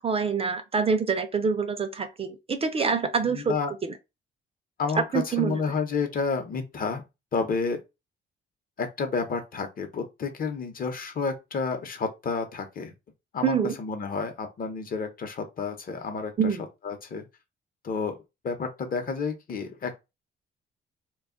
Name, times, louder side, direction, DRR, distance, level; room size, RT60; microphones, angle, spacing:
voice 1, 0.0-3.6 3.8-3.9 5.0-5.6 13.4-13.8 16.4-16.6, right 5 dB, 30° right, 0.4 m, -26 dB
voice 2, 3.3-3.7 4.8-7.0 7.3-7.8 8.8-12.9 13.3-16.3 16.8-17.2 17.8-18.2 18.4-20.0, left 5 dB, 45° left, 0.8 m, -30 dB
2.3 x 2.1 x 3.6 m
cardioid pair, 90°, 20 cm